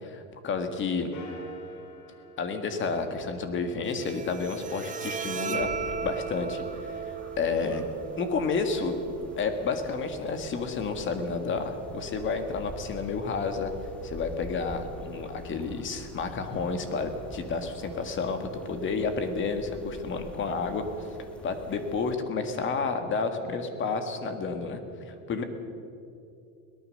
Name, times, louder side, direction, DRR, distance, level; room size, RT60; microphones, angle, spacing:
voice 1, 0.0-1.1 2.4-5.7 6.0-7.9 8.2-8.9 9.4-13.7 14.0-20.8 21.4-24.8 25.1-25.4, left 4 dB, 30° left, 7 dB, 1.9 m, -30 dB
sound 1, 1.1-3.8, right 1 dB, 90° left, 5.4 m, -47 dB
Bowed string instrument, 3.8-10.9, right 6 dB, 20° right, 0.9 m, -37 dB
sound 2, 5.6-22.1, equal, 5° left, 1.2 m, -46 dB
23.0 x 18.5 x 6.6 m, 2.6 s
cardioid pair, 160°, 42 cm